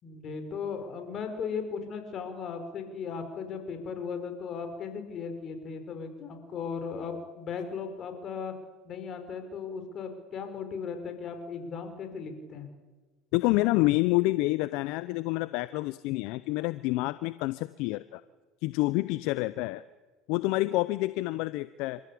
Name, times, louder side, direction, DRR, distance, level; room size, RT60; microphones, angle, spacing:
voice 1, 0.0-8.5 8.8-12.7, left 6 dB, 45° left, 7 dB, 5.1 m, -37 dB
voice 2, 13.3-18.2 18.6-19.8 20.3-22.0, left 20 dB, 70° left, 16 dB, 0.6 m, -28 dB
28.5 x 14.5 x 8.6 m, 1.3 s
hypercardioid pair, 90°, 0 cm